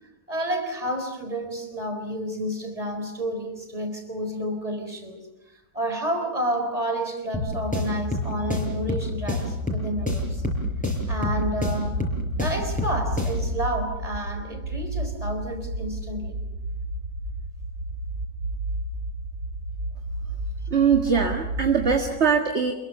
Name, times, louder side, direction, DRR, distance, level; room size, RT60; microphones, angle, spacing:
voice 1, 0.3-10.4 11.1-12.0 12.4-16.4 21.1-21.3, equal, 20° right, 5 dB, 4.4 m, -30 dB
sound 1, 7.3-13.6, left 2 dB, 5° left, 6.0 m, -28 dB
sound 2, 10.0-22.0, right 2 dB, 65° right, 5.4 m, -32 dB
voice 2, 20.7-22.7, right 6 dB, 35° right, 3 dB, 1.9 m, -21 dB
27.5 x 22.5 x 6.9 m, 1.0 s
omnidirectional pair, 2.1 m